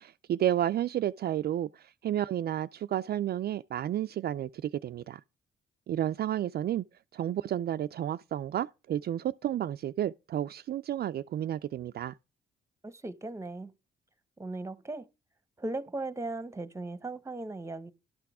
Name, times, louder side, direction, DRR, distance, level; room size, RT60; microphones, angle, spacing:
voice 1, 0.0-5.2 5.9-6.8 7.1-12.1, right 11 dB, 55° right, 0.4 m, -31 dB
voice 2, 12.8-13.7 14.4-15.1 15.6-17.9, right 2 dB, 15° right, 1.0 m, -37 dB
12.0 x 5.9 x 4.8 m
cardioid pair, 90°, 20 cm